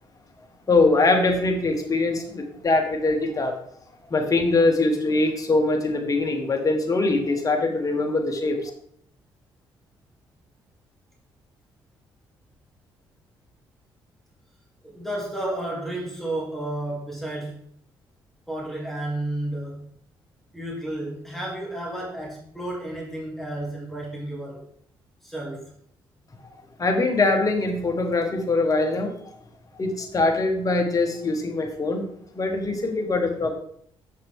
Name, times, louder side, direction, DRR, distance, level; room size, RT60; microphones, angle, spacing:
voice 1, 0.7-3.5 4.1-8.7 26.8-29.1 29.8-32.0 32.3-33.5, left 2 dB, 35° left, 4 dB, 1.6 m, -22 dB
voice 2, 14.8-17.6 18.5-19.8 20.5-24.7 25.2-25.7 33.4-33.5, right 1 dB, ahead, -4 dB, 3.2 m, -32 dB
7.6 x 6.4 x 3.7 m, 0.65 s
cardioid pair, 80°, 10 cm